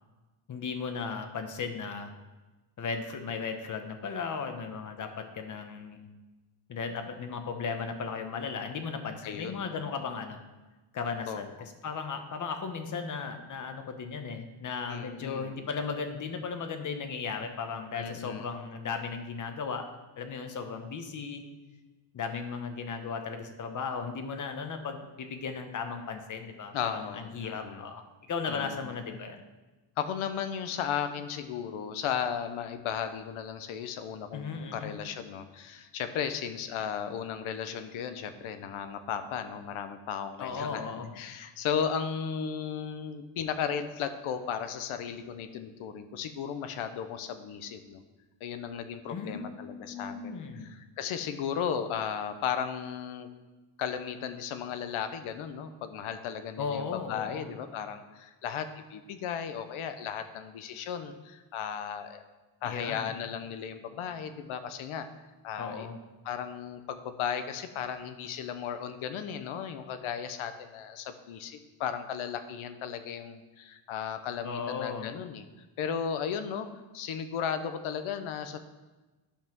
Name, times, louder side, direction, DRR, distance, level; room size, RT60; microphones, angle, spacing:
voice 1, 0.5-2.1 2.8-6.0 6.7-10.4 10.9-19.9 20.2-21.4 22.1-28.0 28.3-29.4 34.3-34.9 40.4-41.1 49.1-50.7 56.6-57.5 62.6-63.1 65.6-65.9 74.4-75.1, left 5 dB, 40° left, 6 dB, 1.0 m, -36 dB
voice 2, 9.2-9.6 11.3-11.5 14.9-15.6 18.0-18.5 26.7-27.8 28.5-28.9 30.0-48.0 48.4-53.3 53.8-62.2 62.6-65.1 65.4-65.9 66.2-75.4 75.8-76.7 76.9-78.6, left 8 dB, 75° left, 9 dB, 0.9 m, -35 dB
10.5 x 5.5 x 6.1 m, 1.2 s
cardioid pair, 170°, 49 cm